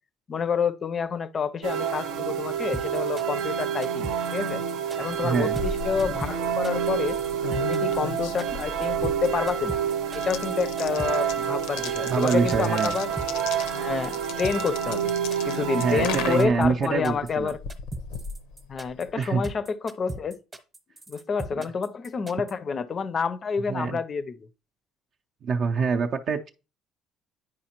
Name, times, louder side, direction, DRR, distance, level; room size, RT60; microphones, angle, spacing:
voice 1, 0.3-4.6 5.0-7.2 7.6-9.8 10.1-13.1 13.7-15.1 15.5-17.6 18.7-20.4 21.1-24.4, left 6 dB, 35° left, 0.5 m, -29 dB
sound 1, 1.6-16.5, right 8 dB, 80° right, 0.8 m, -28 dB
sound 2, 2.7-22.5, right 2 dB, 20° right, 0.8 m, -38 dB
sound 3, 5.1-19.2, left 7 dB, 90° left, 0.7 m, -38 dB
voice 2, 5.2-5.6 12.1-12.9 15.8-17.5 19.2-19.4 23.7-24.0 25.4-26.5, right 5 dB, 50° right, 0.5 m, -25 dB
9.5 x 4.9 x 2.9 m
cardioid pair, 130°, 0 cm